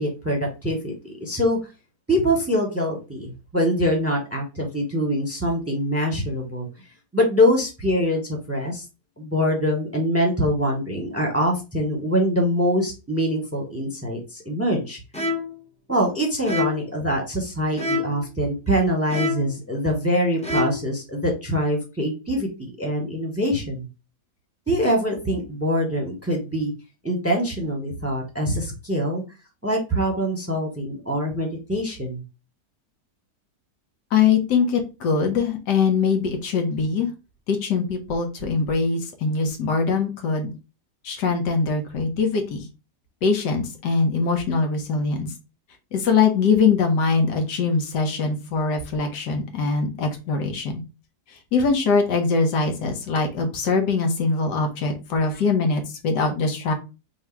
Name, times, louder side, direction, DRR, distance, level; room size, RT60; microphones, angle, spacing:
voice 1, 0.0-1.6 2.1-6.7 7.1-8.8 9.2-15.0 15.9-23.9 24.7-26.7 27.0-29.2 29.6-32.2, equal, 10° right, 1 dB, 0.8 m, -24 dB
sound 1, 15.1-15.6 16.5-16.9 17.7-18.3 19.1-19.6 20.4-20.9, left 3 dB, 10° left, 0.3 m, -27 dB
voice 2, 34.1-37.1 37.5-40.5 41.0-42.6 43.2-45.3 45.9-50.8 51.5-56.7, left 5 dB, 90° left, 5 dB, 1.6 m, -22 dB
3.6 x 2.7 x 4.4 m, 0.29 s
omnidirectional pair, 1.7 m